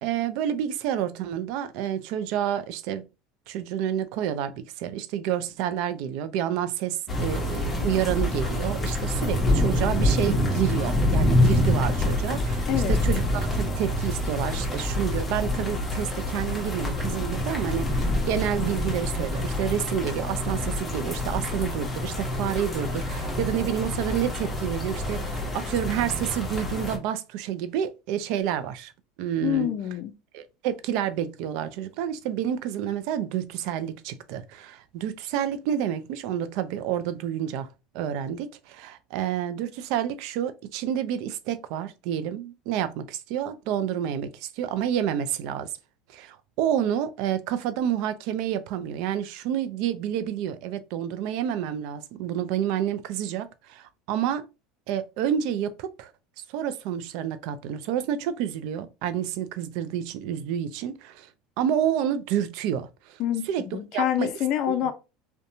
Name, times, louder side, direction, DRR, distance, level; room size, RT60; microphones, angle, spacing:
voice 1, 0.0-3.1 3.5-28.9 29.2-29.7 30.3-37.7 37.9-45.7 46.1-54.5 54.9-56.1 56.5-61.3 61.6-63.2 63.5-64.3 64.7-64.9, right 10 dB, 65° right, 0.4 m, -29 dB
sound 1, 7.1-27.0, left 1 dB, 20° left, 0.8 m, -26 dB
voice 2, 12.7-13.0 29.4-30.1 63.2-63.5 63.7-64.9, left 11 dB, 55° left, 0.4 m, -26 dB
2.7 x 2.2 x 2.6 m
supercardioid pair, 105°, 0 cm